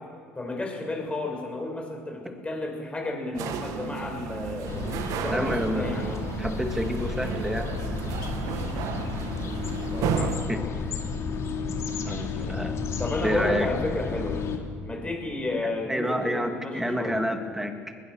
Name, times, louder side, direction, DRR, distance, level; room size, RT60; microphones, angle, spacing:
voice 1, 0.3-4.9 5.1-6.2 9.9-10.7 13.0-14.4 14.8-17.2, left 2 dB, 15° left, 2 dB, 6.5 m, -32 dB
sound 1, 3.3-10.4, right 8 dB, 60° right, 1.7 m, -33 dB
sound 2, 4.7-14.6, left 5 dB, 45° left, 2.6 m, -32 dB
voice 2, 5.3-7.7 10.5-10.6 12.0-12.8 13.2-13.7 15.6-17.7, equal, 5° right, 6 dB, 2.6 m, -29 dB
21.5 x 19.5 x 6.5 m, 2.1 s
figure-of-eight pair, 60°, 7 cm